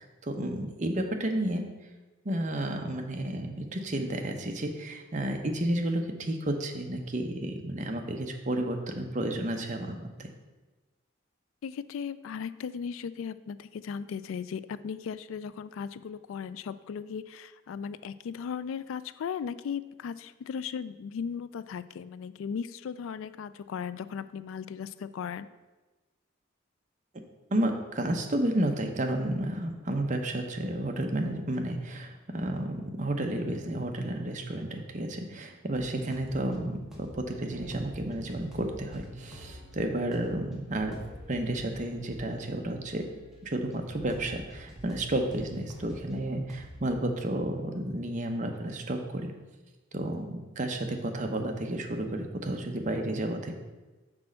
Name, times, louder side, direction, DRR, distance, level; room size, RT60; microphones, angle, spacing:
voice 1, 0.0-1.6 2.2-10.3 27.5-43.1 43.4-49.3 49.9-53.5, right 1 dB, 40° right, 4 dB, 0.7 m, -31 dB
voice 2, 11.6-25.5, left 7 dB, 85° left, 15 dB, 0.3 m, -37 dB
sound 1, 35.7-46.9, equal, ahead, 1.2 m, -48 dB
6.1 x 4.3 x 6.2 m, 1.2 s
head